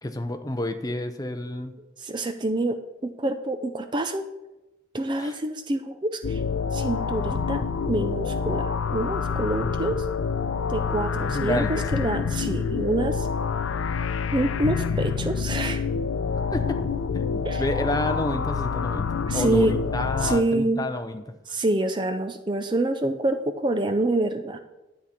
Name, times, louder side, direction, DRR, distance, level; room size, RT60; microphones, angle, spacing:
voice 1, 0.0-1.7 5.2-5.4 11.3-11.8 16.5-19.1 19.3-21.2, left 1 dB, 20° left, 8 dB, 0.6 m, -30 dB
voice 2, 2.0-4.3 4.9-6.4 6.7-10.1 10.7-13.3 14.3-15.9 17.4-17.6 19.3-19.8 20.2-20.9 21.5-24.6, right 2 dB, 25° right, 8 dB, 0.4 m, -26 dB
sound 1, 6.2-20.4, left 6 dB, 80° left, 0.5 m, -27 dB
10.5 x 8.3 x 4.3 m, 1.0 s
head